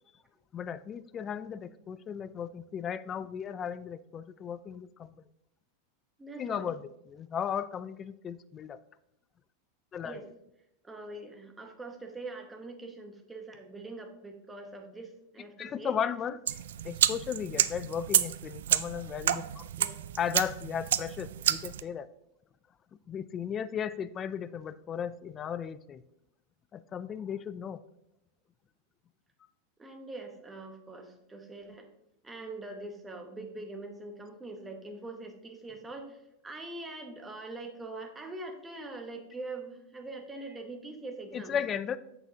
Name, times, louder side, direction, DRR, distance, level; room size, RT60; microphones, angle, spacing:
voice 1, 0.5-5.1 6.4-6.8 7.1-8.8 9.9-10.2 15.6-16.4 16.8-19.7 20.2-22.1 23.1-26.0 26.7-27.8 41.3-42.0, left 8 dB, 25° left, 15 dB, 0.3 m, -35 dB
voice 2, 6.2-6.7 10.0-10.3 10.8-16.0 19.8-20.0 29.8-31.9 32.2-41.6, right 2 dB, 10° right, 4 dB, 1.0 m, -43 dB
sound 1, 16.5-21.8, right 11 dB, 85° right, 0.3 m, -30 dB
8.2 x 6.7 x 2.8 m, 0.83 s
supercardioid pair, 140°, 0 cm